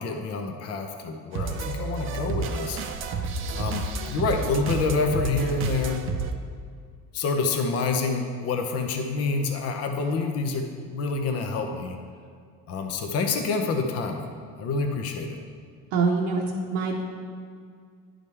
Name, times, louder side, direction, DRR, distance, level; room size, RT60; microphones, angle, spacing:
voice 1, 0.0-2.8 3.1-3.2 3.5-6.0 7.1-12.0 12.7-14.3 14.6-15.4, left 4 dB, 55° left, 4 dB, 0.8 m, -27 dB
sound 1, 1.3-6.3, right 4 dB, 45° right, 0.6 m, -30 dB
voice 2, 15.9-16.4 16.7-17.1, right 4 dB, 85° right, -2 dB, 0.9 m, -24 dB
11.0 x 5.1 x 3.3 m, 2.1 s
cardioid pair, 135°, 30 cm